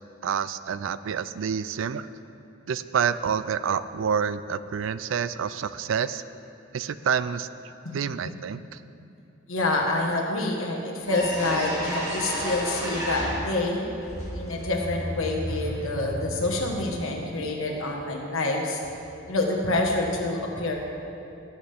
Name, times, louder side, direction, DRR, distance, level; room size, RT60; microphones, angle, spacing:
voice 1, 0.2-2.1 2.7-6.2 6.7-7.5 7.9-8.6, right 7 dB, 70° right, 14 dB, 0.3 m, -28 dB
voice 2, 7.8-8.4 9.5-13.9 14.3-18.8 19.3-20.8, left 2 dB, 80° left, 1 dB, 1.5 m, -27 dB
sound 1, 10.6-10.7 11.0-13.7 14.0-17.0, equal, 15° right, 2.6 m, -33 dB
18.0 x 7.4 x 3.5 m, 2.7 s
head